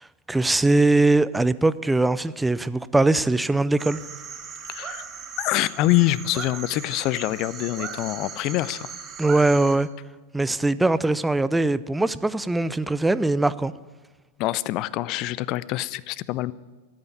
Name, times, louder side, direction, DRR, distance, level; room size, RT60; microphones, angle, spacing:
voice 1, 0.3-4.0 9.2-9.9 10.3-13.7, right 2 dB, 5° right, 0.5 m, -21 dB
sound 1, 3.8-9.8, right 6 dB, 25° right, 1.8 m, -38 dB
voice 2, 4.7-5.0 5.4-8.9 14.4-16.5, left 17 dB, 40° left, 0.5 m, -25 dB
14.5 x 8.9 x 9.7 m
figure-of-eight pair, 90°, 0 cm